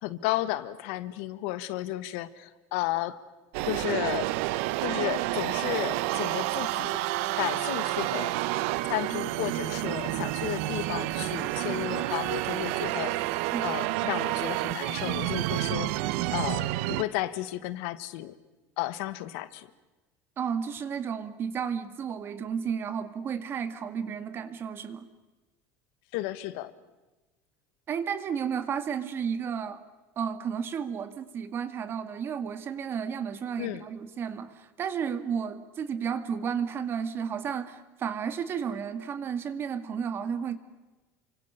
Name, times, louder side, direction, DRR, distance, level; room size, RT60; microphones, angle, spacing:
voice 1, 0.0-3.2 3.7-4.3 4.8-6.9 7.4-8.3 8.8-13.2 13.6-18.3 18.8-19.7 26.1-26.7 33.6-33.8, left 16 dB, 75° left, 1.6 m, -33 dB
sound 1, 3.5-17.0, right 17 dB, 80° right, 0.9 m, -29 dB
voice 2, 13.5-13.8 20.4-25.1 27.9-29.8 30.2-40.6, right 7 dB, 35° right, 2.0 m, -32 dB
29.0 x 25.0 x 6.8 m
cardioid pair, 150°, 7 cm